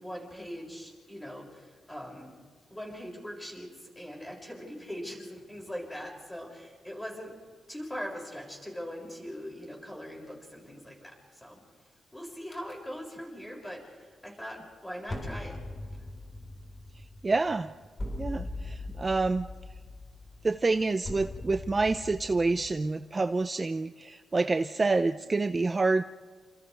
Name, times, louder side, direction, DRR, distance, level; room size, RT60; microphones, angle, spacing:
voice 1, 0.0-2.3 2.7-7.3 7.7-11.6 12.1-15.6, equal, 10° left, -2 dB, 6.6 m, -41 dB
sound 1, 12.5-12.7 15.1-22.8, left 2 dB, 25° left, 4.5 m, -40 dB
voice 2, 17.2-17.7 18.2-19.5 20.4-26.0, right 3 dB, 25° right, 10 dB, 0.5 m, -27 dB
29.5 x 27.5 x 3.4 m, 1.5 s
wide cardioid pair, 125°, 0 cm